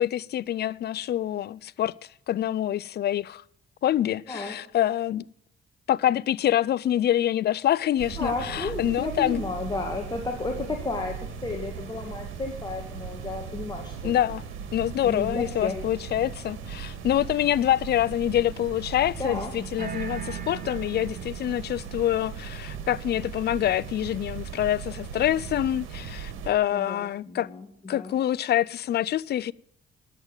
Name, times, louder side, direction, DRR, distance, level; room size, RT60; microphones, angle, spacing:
voice 1, 0.0-1.9 2.3-3.4 3.8-5.3 5.9-9.4 14.0-14.4 14.7-27.5 27.9-29.5, left 12 dB, 55° left, 0.4 m, -26 dB
sound 1, 8.0-26.5, right 7 dB, 90° right, 2.0 m, -38 dB
voice 2, 8.2-14.2 15.0-15.8 19.2-19.5 26.7-28.1, left 3 dB, 20° left, 2.0 m, -33 dB
sound 2, 19.8-21.7, right 8 dB, 45° right, 1.9 m, -38 dB
10.5 x 8.2 x 8.8 m
cardioid pair, 90°, 20 cm